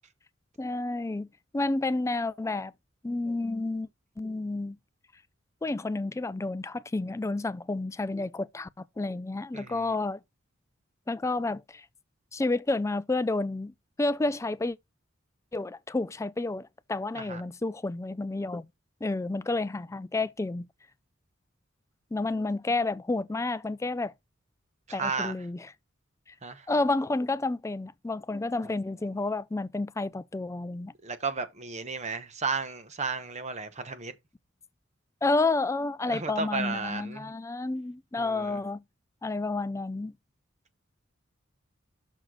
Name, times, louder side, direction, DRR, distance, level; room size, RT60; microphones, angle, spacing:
voice 1, 0.6-1.3 1.5-2.7 3.0-3.9 4.2-4.8 5.6-8.7 9.0-10.2 11.1-11.8 12.3-14.8 15.5-18.7 19.0-20.7 22.1-24.1 24.9-25.7 26.7-30.9 35.2-38.8 39.2-40.1, left 2 dB, 15° left, 0.4 m, -30 dB
voice 2, 9.5-9.9 17.1-17.4 24.9-25.3 26.4-26.7 28.6-28.7 31.0-34.1 36.1-37.3 38.2-38.6, right 4 dB, 35° right, 1.0 m, -34 dB
6.4 x 5.9 x 4.8 m
head